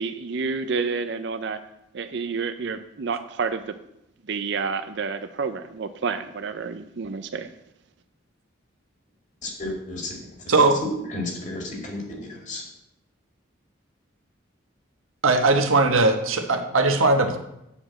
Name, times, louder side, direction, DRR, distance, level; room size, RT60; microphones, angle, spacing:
voice 1, 0.0-1.6 1.9-3.7 4.3-7.5, right 5 dB, 55° right, 11 dB, 0.5 m, -29 dB
voice 2, 9.4-10.1 10.8-12.6, left 1 dB, 35° left, 0 dB, 2.3 m, -32 dB
voice 3, 15.2-17.4, right 3 dB, 85° right, 5 dB, 1.2 m, -19 dB
8.6 x 5.0 x 7.5 m, 0.82 s
head